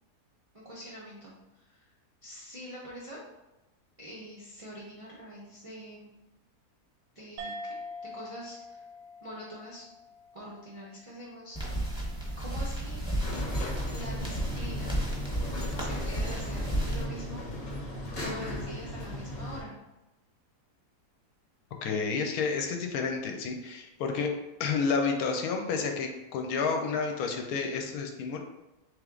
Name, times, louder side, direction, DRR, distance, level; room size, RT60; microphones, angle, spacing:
voice 1, 0.5-1.8 2.2-3.3 4.0-6.1 7.1-7.8 8.1-8.8 9.2-9.9 10.3-11.6 12.4-13.0 13.9-14.9 15.8-17.4 18.2-19.7, equal, 55° right, -5 dB, 0.3 m, -44 dB
sound 1, 7.4-12.3, left 1 dB, 90° right, 1.2 m, -45 dB
sound 2, 11.5-17.0, right 1 dB, 5° right, 0.7 m, -33 dB
sound 3, 13.2-19.6, left 1 dB, 40° left, 0.7 m, -37 dB
voice 2, 21.8-24.3 24.6-28.4, left 5 dB, 75° left, 3 dB, 1.0 m, -30 dB
3.4 x 3.1 x 3.7 m, 0.99 s
omnidirectional pair, 1.7 m